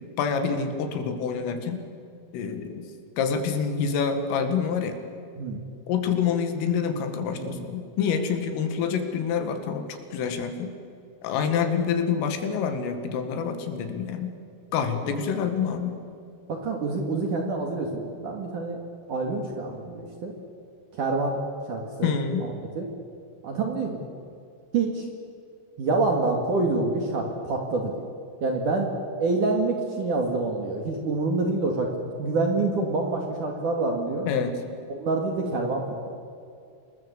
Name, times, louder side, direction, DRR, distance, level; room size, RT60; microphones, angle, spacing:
voice 1, 0.2-1.8 2.3-2.9 3.2-5.0 5.9-10.7 11.2-14.4 14.7-16.0 22.0-22.5 34.3-34.6, left 6 dB, 80° left, 7 dB, 4.6 m, -27 dB
voice 2, 7.3-7.7 16.5-18.8 19.1-20.3 20.9-21.4 21.7-22.9 23.4-24.0 24.7-25.1 25.8-28.0 28.4-28.9 29.2-34.3 34.9-36.2, right 3 dB, 50° right, 2 dB, 2.9 m, -27 dB
27.5 x 20.5 x 8.2 m, 2.5 s
omnidirectional pair, 5.8 m